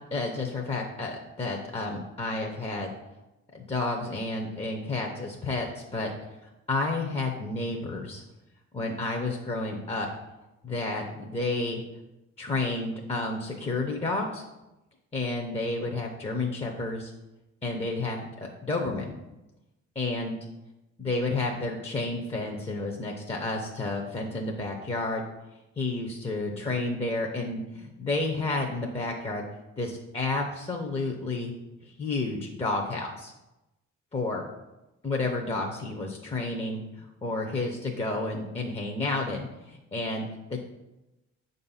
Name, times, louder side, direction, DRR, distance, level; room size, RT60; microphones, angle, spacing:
voice 1, 0.1-2.9 3.5-6.1 6.7-8.2 8.7-10.1 10.6-11.8 12.4-14.4 15.1-17.1 17.6-19.1 20.0-20.4 21.0-25.2 25.8-29.4 29.8-31.5 31.8-33.3 34.1-34.4 35.0-40.6, left 2 dB, 20° left, 1 dB, 0.7 m, -31 dB
6.4 x 2.6 x 5.6 m, 0.99 s
cardioid pair, 90°, 30 cm